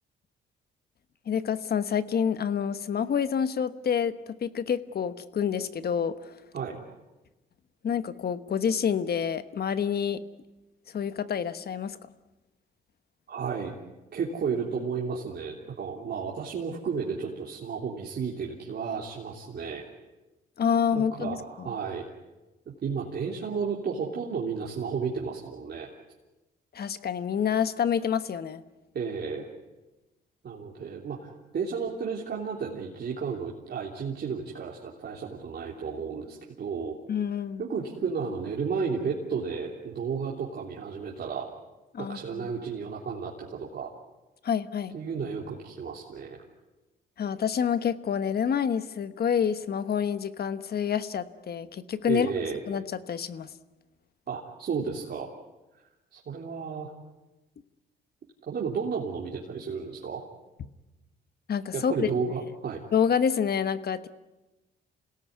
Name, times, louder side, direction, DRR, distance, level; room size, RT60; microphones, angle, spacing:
voice 1, 1.3-6.4 7.8-10.2 10.9-12.0 20.6-21.7 26.7-28.6 37.1-37.6 41.9-42.4 44.4-44.9 47.2-52.3 52.7-53.5 61.5-62.1 62.9-64.1, left 7 dB, 50° left, 13 dB, 1.2 m, -28 dB
voice 2, 13.3-13.8 14.1-19.8 20.9-22.1 22.8-25.9 28.9-29.5 30.4-37.0 37.6-41.5 42.0-43.9 44.9-46.5 52.1-52.6 54.3-55.3 56.1-56.9 58.5-60.2 61.7-62.8, right 5 dB, 55° right, -3 dB, 3.3 m, -33 dB
27.0 x 17.5 x 9.5 m, 1.1 s
cardioid pair, 90°, 20 cm